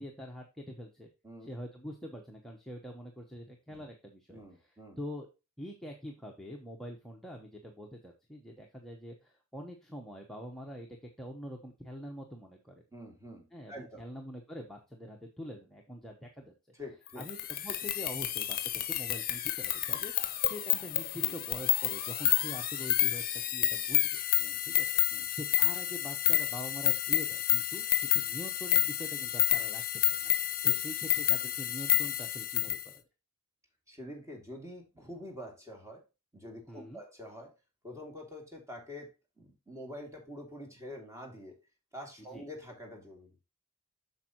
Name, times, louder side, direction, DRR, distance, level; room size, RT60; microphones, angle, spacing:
voice 1, 0.0-1.1 1.4-4.4 5.0-5.3 5.6-10.9 11.2-12.8 13.5-16.5 17.2-24.2 24.7-30.3 30.6-33.0 36.7-37.0 42.3-42.5, equal, ahead, 0 dB, 1.0 m, -44 dB
voice 2, 4.3-5.0 12.9-14.0 16.8-17.2 24.4-24.6 25.1-25.3 30.6-30.7 33.9-36.0 36.3-37.5 37.8-41.6 41.9-43.4, left 1 dB, 15° right, 0 dB, 2.5 m, -46 dB
sound 1, 17.2-32.8, left 12 dB, 40° left, 0.8 m, -29 dB
8.3 x 6.4 x 3.0 m, 0.28 s
head